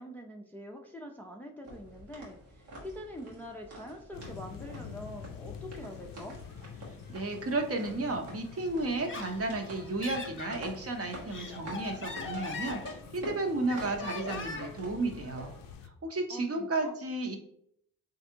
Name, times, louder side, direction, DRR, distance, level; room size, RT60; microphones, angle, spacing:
voice 1, 0.0-6.4 16.3-16.9, left 1 dB, 5° left, 2 dB, 0.4 m, -44 dB
sound 1, 1.6-15.7, right 1 dB, 85° right, 1.1 m, -48 dB
sound 2, 4.1-15.9, left 8 dB, 60° left, 0.5 m, -48 dB
voice 2, 7.1-15.5 15.8-17.4, right 2 dB, 35° right, 4 dB, 0.8 m, -33 dB
Laughter, 8.9-10.6 11.1-13.3 13.7-14.8, left 4 dB, 30° left, 0.8 m, -41 dB
3.2 x 2.6 x 2.7 m, 0.67 s
supercardioid pair, 45°, 40 cm